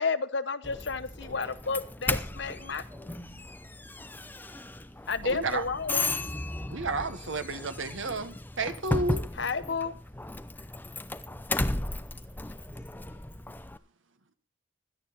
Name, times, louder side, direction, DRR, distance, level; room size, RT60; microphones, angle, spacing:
voice 1, 0.0-3.4 5.1-6.1 9.4-9.9, left 4 dB, 60° left, 1.0 m, -32 dB
Doorbell, 0.6-13.8, left 2 dB, 10° left, 0.6 m, -35 dB
voice 2, 2.2-3.2 12.1-13.2, left 2 dB, 5° right, 6.9 m, -54 dB
voice 3, 5.2-5.6 6.7-9.2, right 3 dB, 80° right, 1.5 m, -32 dB
16.5 x 11.5 x 4.2 m
head